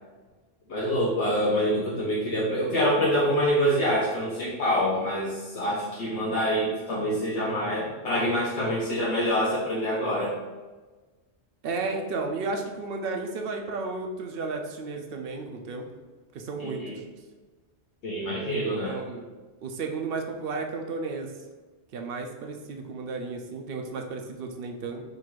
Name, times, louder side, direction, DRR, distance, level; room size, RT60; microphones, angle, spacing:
voice 1, 0.7-10.4 16.6-17.0 18.0-19.0, equal, 75° left, -6 dB, 1.0 m, -26 dB
voice 2, 11.6-15.9 16.3-17.0 18.7-19.3 19.6-21.3 21.9-25.0, right 3 dB, 65° right, 3 dB, 0.7 m, -33 dB
3.8 x 2.4 x 4.6 m, 1.3 s
omnidirectional pair, 1.2 m